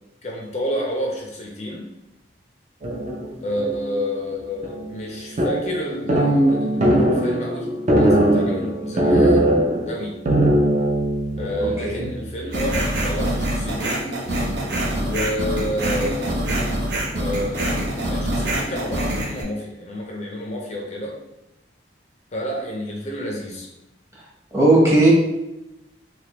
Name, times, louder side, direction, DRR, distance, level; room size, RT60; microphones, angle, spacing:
voice 1, 0.2-1.9 3.4-10.2 11.4-14.1 15.0-16.3 17.2-17.8 18.1-21.2 22.3-23.7, equal, 35° left, 0 dB, 0.5 m, -29 dB
sound 1, 2.8-4.1 4.3-4.4 4.6-5.1 5.4-12.8 13.1-13.2 14.4-14.7 15.2-17.2, right 1 dB, 40° right, 0.5 m, -21 dB
sound 2, 12.5-19.4, right 1 dB, 70° right, 0.8 m, -25 dB
voice 2, 24.5-25.1, right 2 dB, 15° right, -5 dB, 0.9 m, -15 dB
3.3 x 2.9 x 2.9 m, 0.94 s
head